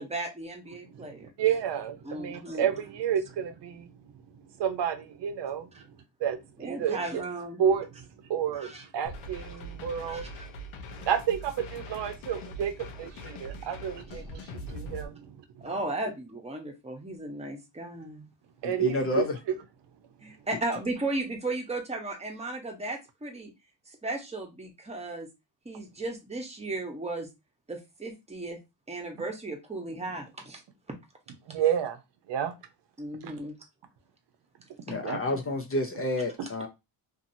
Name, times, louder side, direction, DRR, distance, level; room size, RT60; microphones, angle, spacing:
voice 1, 0.0-1.3 2.0-2.7 5.7-5.8 6.6-7.6 8.5-8.9 10.1-10.2 15.6-18.2 20.2-23.5 23.9-25.3 25.6-27.3 27.7-28.6 28.9-30.6 33.0-33.5, right 2 dB, 15° right, 1.0 m, -35 dB
voice 2, 0.9-3.9 4.6-5.7 6.2-7.0 7.6-8.0 8.3-10.3 11.0-15.4 18.6-19.3 31.5-32.0 32.3-32.5 33.2-33.3 34.9-35.2, right 8 dB, 60° right, 0.8 m, -30 dB
sound 1, 9.0-15.1, equal, 85° left, 0.8 m, -42 dB
voice 3, 18.6-19.4 34.9-36.7, left 2 dB, 30° left, 0.5 m, -30 dB
2.7 x 2.7 x 2.6 m
cardioid pair, 100°, 47 cm